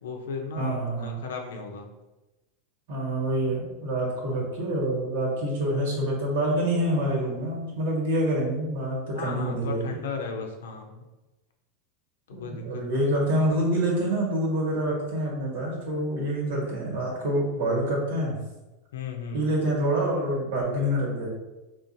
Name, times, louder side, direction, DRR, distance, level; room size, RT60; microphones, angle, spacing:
voice 1, 0.0-1.9 9.1-11.0 12.3-13.5 18.9-19.5, left 4 dB, 90° left, 3 dB, 0.6 m, -36 dB
voice 2, 0.6-1.2 2.9-10.0 12.3-18.3 19.3-21.3, right 1 dB, 80° right, -3 dB, 1.4 m, -26 dB
3.9 x 2.5 x 2.6 m, 1.1 s
supercardioid pair, 125°, 0 cm